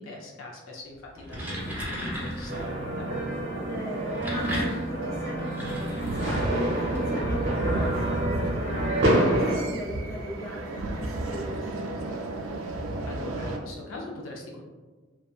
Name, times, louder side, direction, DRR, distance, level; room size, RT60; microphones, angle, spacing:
voice 1, 0.0-3.1 13.1-14.6, left 2 dB, 80° left, -1 dB, 0.4 m, -41 dB
sound 1, 1.0-2.7 3.9-7.0, equal, 10° right, 0.5 m, -34 dB
sound 2, 2.5-9.6, right 1 dB, 65° right, 0.8 m, -28 dB
voice 2, 3.6-11.8, equal, 15° left, -8 dB, 0.9 m, -38 dB
sound 3, 6.0-13.6, right 2 dB, 80° right, 0.4 m, -33 dB
2.7 x 2.3 x 2.3 m, 1.3 s
head